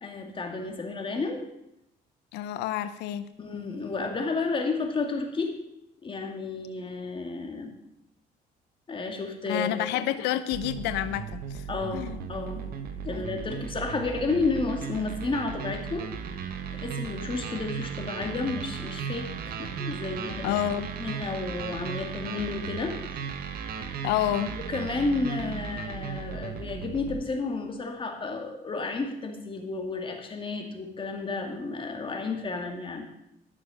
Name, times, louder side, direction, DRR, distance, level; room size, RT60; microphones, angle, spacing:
voice 1, 0.0-1.4 3.4-5.6 6.0-7.7 8.9-10.1 11.7-12.7 13.0-16.1 16.7-20.6 21.0-23.0 24.6-33.1, left 3 dB, 30° left, 3 dB, 2.2 m, -32 dB
voice 2, 2.3-3.2 9.5-11.7 11.9-12.2 13.1-13.3 20.4-20.9 24.0-24.5, left 12 dB, 85° left, 13 dB, 0.7 m, -29 dB
sound 1, 10.5-27.2, right 7 dB, 65° right, 1.3 m, -36 dB
13.0 x 6.9 x 6.4 m, 0.83 s
cardioid pair, 110°, 17 cm